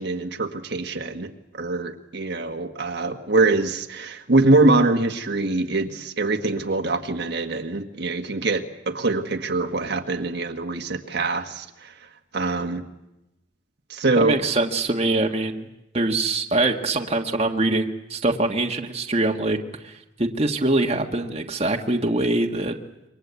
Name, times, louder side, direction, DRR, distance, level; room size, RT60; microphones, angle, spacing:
voice 1, 0.0-11.9 12.3-12.8 13.9-14.4, right 2 dB, 55° right, 4 dB, 1.6 m, -23 dB
voice 2, 14.2-15.7 15.9-19.6 19.8-22.7, right 2 dB, 30° right, 2 dB, 1.6 m, -23 dB
28.0 x 24.0 x 8.2 m, 0.92 s
head